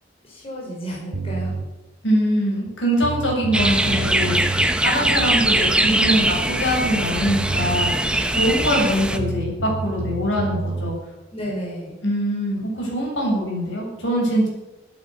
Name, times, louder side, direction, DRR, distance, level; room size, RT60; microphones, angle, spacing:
voice 1, 0.2-1.6 8.4-8.6 11.3-12.0, equal, 30° left, -3 dB, 5.8 m, -32 dB
sound 1, 1.1-1.7 2.7-2.8 3.0-4.7 6.9-7.0 7.3-7.9 9.2-10.9, right 2 dB, 80° right, 1.3 m, -28 dB
voice 2, 2.0-4.4 4.8-7.9 8.3-11.0 12.0-14.5, equal, 75° left, -2 dB, 7.9 m, -23 dB
sound 2, 3.5-9.2, right 1 dB, 5° right, 1.0 m, -21 dB
14.5 x 13.5 x 7.3 m, 1.0 s
head